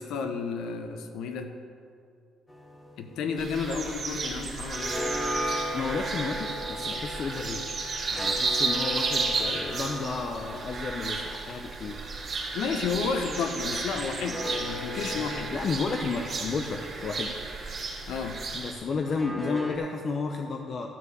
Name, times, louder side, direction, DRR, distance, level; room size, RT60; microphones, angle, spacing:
voice 1, 0.0-1.5 3.0-5.0 12.5-15.5 18.1-18.4, left 5 dB, 85° left, 6 dB, 1.0 m, -32 dB
sound 1, 2.5-4.2 4.4-13.1 14.0-18.1 19.0-19.8, left 1 dB, 15° left, 1.2 m, -38 dB
sound 2, 3.4-18.7, right 4 dB, 45° right, 2.2 m, -33 dB
voice 2, 5.7-7.6 8.1-12.0 15.5-17.3 18.5-20.9, left 4 dB, 45° left, 3 dB, 0.7 m, -32 dB
12.0 x 5.0 x 8.1 m, 2.4 s
cardioid pair, 120°, 0 cm